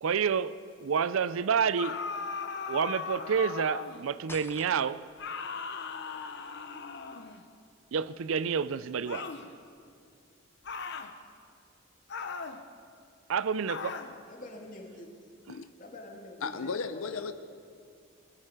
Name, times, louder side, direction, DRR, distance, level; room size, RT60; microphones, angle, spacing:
voice 1, 0.0-2.0 2.7-5.0 7.9-9.3 13.3-14.0, right 6 dB, 75° right, 0.4 m, -29 dB
sound 1, 1.8-4.1 5.2-7.4 9.1-9.5 10.6-11.1 12.1-12.6 13.7-14.1, left 5 dB, 55° left, 0.8 m, -38 dB
sound 2, 4.3-5.2, left 3 dB, 10° left, 0.4 m, -47 dB
voice 2, 14.1-15.3 15.8-17.3, left 1 dB, 40° left, 2.1 m, -46 dB
voice 3, 16.4-17.3, left 5 dB, 80° left, 0.5 m, -35 dB
20.5 x 13.5 x 4.9 m
head